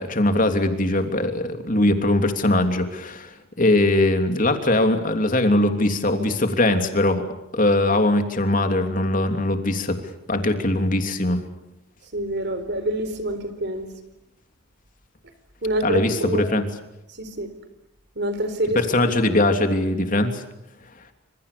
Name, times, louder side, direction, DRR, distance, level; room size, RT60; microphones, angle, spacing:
voice 1, 0.0-7.2 7.5-10.0 10.3-11.4 15.8-16.7 18.7-20.4, left 1 dB, 40° left, 6 dB, 3.1 m, -21 dB
voice 2, 12.1-13.9 15.6-16.5 17.2-17.5 18.2-18.8, right 1 dB, 55° right, 10 dB, 4.1 m, -26 dB
29.0 x 27.0 x 7.0 m, 0.89 s
head